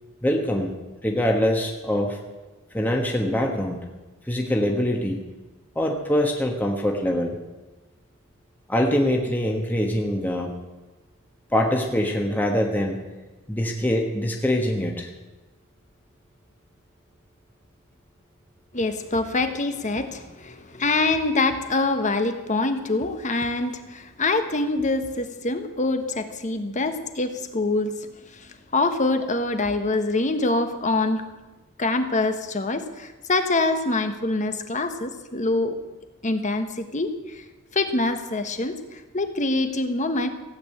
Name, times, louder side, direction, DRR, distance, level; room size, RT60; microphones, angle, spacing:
voice 1, 0.2-2.2 2.7-3.8 4.2-5.2 5.7-7.4 8.7-10.5 11.5-13.0 13.5-15.1, left 1 dB, 10° left, 0 dB, 1.3 m, -24 dB
voice 2, 18.7-27.9 28.3-31.2 31.8-35.7 36.2-37.4 37.7-40.3, left 2 dB, 35° left, 8 dB, 1.2 m, -25 dB
16.0 x 8.7 x 8.5 m, 1.2 s
head